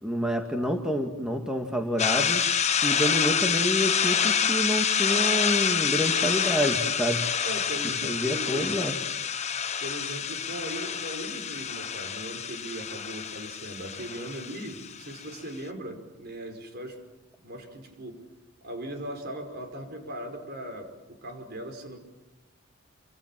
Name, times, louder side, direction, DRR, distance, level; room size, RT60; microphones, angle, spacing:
voice 1, 0.0-2.4 2.8-7.2 8.0-9.0, equal, 5° right, 3 dB, 1.9 m, -28 dB
sound 1, 2.0-15.3, left 7 dB, 35° left, 1.2 m, -27 dB
voice 2, 7.4-8.8 9.8-17.0 17.4-18.2 18.6-20.9 21.2-22.0, right 1 dB, 50° right, 5 dB, 5.4 m, -38 dB
28.5 x 26.5 x 7.6 m, 1.0 s
head